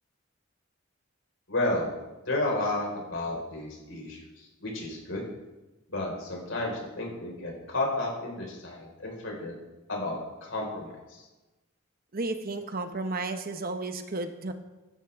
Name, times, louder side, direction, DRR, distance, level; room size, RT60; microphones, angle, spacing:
voice 1, 1.5-1.9 2.2-5.2 5.9-9.5 9.9-11.3, left 2 dB, 70° left, -1 dB, 5.0 m, -32 dB
voice 2, 12.1-14.5, right 2 dB, 45° right, 8 dB, 1.0 m, -33 dB
16.5 x 13.0 x 3.7 m, 1.1 s
head